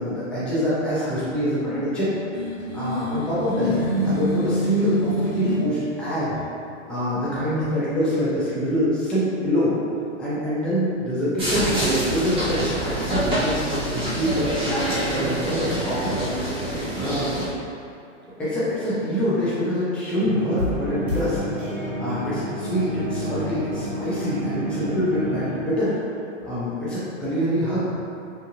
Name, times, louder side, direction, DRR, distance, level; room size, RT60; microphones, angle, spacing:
voice 1, 0.0-2.1 2.7-3.7 4.0-6.4 6.9-9.7 10.2-16.2 16.6-17.4 18.4-21.5 22.0-25.9 26.4-27.9, equal, 5° left, -10 dB, 0.3 m, -25 dB
sound 1, 2.3-5.6, equal, 70° left, 1.0 m, -26 dB
sound 2, 11.4-17.5, right 1 dB, 15° right, 0.7 m, -25 dB
sound 3, 20.2-25.6, equal, 80° right, 0.8 m, -29 dB
2.8 x 2.6 x 2.4 m, 2.6 s
hypercardioid pair, 120°, 38 cm